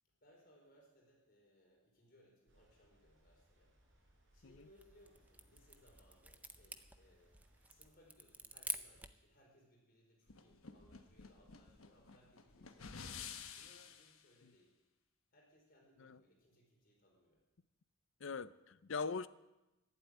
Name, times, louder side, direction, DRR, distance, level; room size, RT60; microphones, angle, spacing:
voice 1, 0.2-7.4 7.7-14.8 15.3-17.4, equal, 45° left, 5.0 m, -68 dB
sound 1, 2.5-7.9, right 1 dB, 65° right, 4.5 m, -70 dB
sound 2, 4.6-9.3, right 3 dB, 5° right, 0.5 m, -48 dB
sound 3, 10.3-14.2, left 6 dB, 85° left, 1.2 m, -51 dB
voice 2, 18.2-19.3, left 4 dB, 65° left, 0.6 m, -41 dB
12.5 x 11.5 x 9.4 m
head